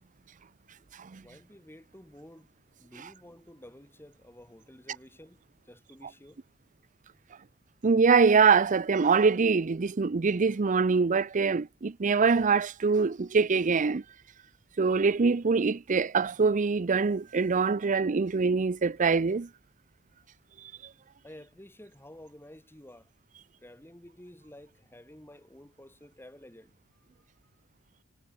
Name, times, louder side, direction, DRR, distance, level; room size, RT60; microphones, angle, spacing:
voice 1, 1.2-2.5 2.8-6.4 21.2-23.1 23.6-26.7, left 1 dB, 10° left, 2.7 m, -51 dB
voice 2, 7.8-14.0 14.8-19.5, right 5 dB, 40° right, 0.5 m, -24 dB
head